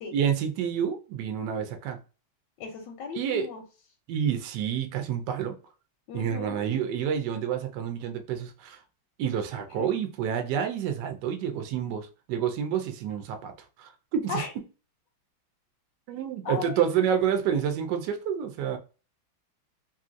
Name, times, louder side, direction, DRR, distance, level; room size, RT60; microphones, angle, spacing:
voice 1, 0.1-2.0 3.1-3.5 4.1-5.6 6.1-8.8 9.2-13.5 13.8-14.4 16.1-18.8, right 8 dB, 75° right, 1.1 m, -28 dB
voice 2, 2.6-3.6 6.1-6.7 9.8-9.9 14.3-14.5 16.4-17.0, left 5 dB, 75° left, 1.1 m, -36 dB
3.0 x 2.6 x 2.5 m
omnidirectional pair, 2.2 m